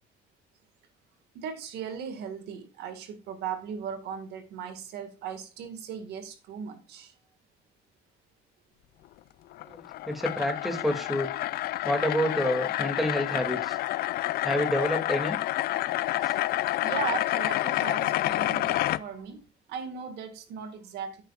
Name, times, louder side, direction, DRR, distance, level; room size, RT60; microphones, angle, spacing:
voice 1, 1.3-7.1 16.7-19.4 19.7-21.2, right 7 dB, 80° right, 2.0 m, -37 dB
sound 1, 9.5-19.0, left 15 dB, 65° left, 0.4 m, -29 dB
voice 2, 9.6-11.3 11.8-13.8 14.4-15.4 16.2-16.3, equal, ahead, 2.4 m, -28 dB
9.7 x 9.1 x 2.4 m
cardioid pair, 110°, 17 cm